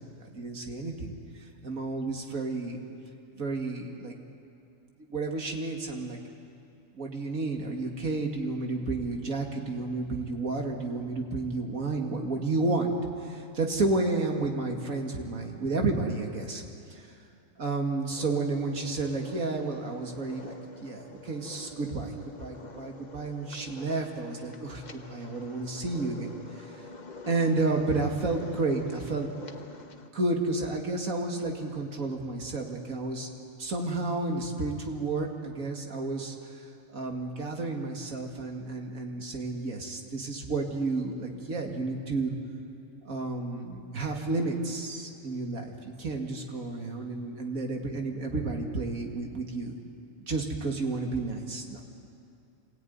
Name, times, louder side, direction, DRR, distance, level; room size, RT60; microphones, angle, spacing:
voice 1, 0.3-1.1 1.6-2.8 3.4-4.2 5.1-6.2 6.9-13.0 13.2-16.6 16.9-17.0 17.6-20.6 20.8-22.1 22.4-24.8 25.1-26.3 27.3-29.3 30.1-33.3 33.6-36.3 36.9-42.3 43.0-49.7 50.3-51.8, right 3 dB, 85° right, 2 dB, 2.5 m, -31 dB
sound 1, 18.1-30.1, left 3 dB, 35° left, 1.2 m, -47 dB
26.0 x 18.0 x 9.5 m, 2.6 s
omnidirectional pair, 1.4 m